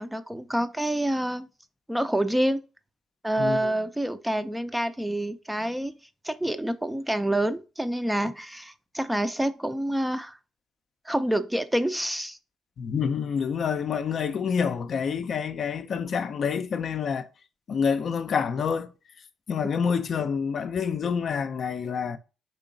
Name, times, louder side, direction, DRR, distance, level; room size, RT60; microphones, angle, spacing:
voice 1, 0.0-1.5 1.9-2.6 3.2-5.9 6.2-10.4 11.1-12.4, right 1 dB, 5° right, 0.4 m, -27 dB
voice 2, 3.4-3.7 12.8-17.3 17.7-18.9 19.5-22.2, left 6 dB, 55° left, 0.4 m, -27 dB
4.5 x 3.0 x 3.8 m
cardioid pair, 90°, 0 cm